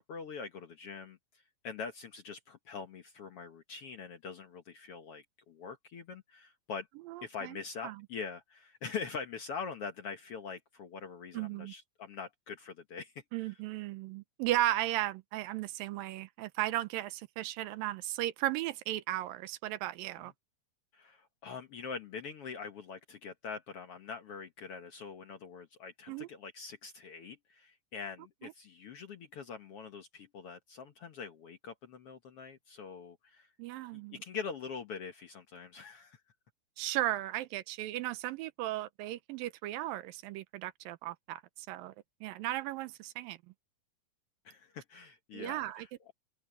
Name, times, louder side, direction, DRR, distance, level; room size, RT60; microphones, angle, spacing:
voice 1, 0.0-6.9 7.2-13.2 20.9-33.5 33.9-36.2 44.4-46.1, left 5 dB, 60° left, 1.6 m, -44 dB
voice 2, 7.1-7.6 7.8-8.0 11.3-11.7 13.3-20.3 26.1-26.3 28.4-28.5 33.6-34.2 36.8-41.9 42.2-43.4 45.3-46.1, right 15 dB, 85° right, 2.5 m, -36 dB
open air
omnidirectional pair, 4.0 m